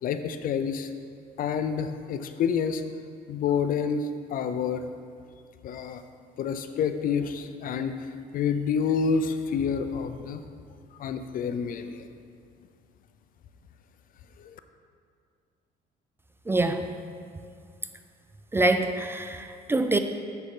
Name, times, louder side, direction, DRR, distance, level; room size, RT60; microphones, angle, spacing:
voice 1, 0.0-0.9 1.4-2.8 3.3-4.9 5.6-6.0 6.4-8.1 8.3-10.4 11.0-12.1 14.4-14.5, left 6 dB, 55° left, 9 dB, 0.5 m, -28 dB
voice 2, 16.5-16.9 18.5-20.0, right 2 dB, 15° right, 7 dB, 0.4 m, -25 dB
7.0 x 6.8 x 4.8 m, 2.3 s
cardioid pair, 110°, 17 cm